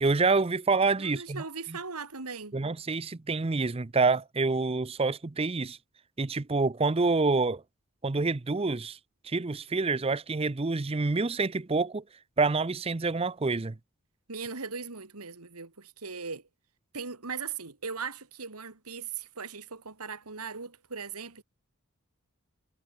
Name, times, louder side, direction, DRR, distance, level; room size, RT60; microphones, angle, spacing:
voice 1, 0.0-1.8 2.5-5.8 6.2-7.6 8.0-9.0 9.2-12.0 12.4-13.8, right 3 dB, 25° right, 0.6 m, -27 dB
voice 2, 1.0-2.6 14.3-16.4 16.9-21.4, right 5 dB, 90° right, 2.4 m, -39 dB
head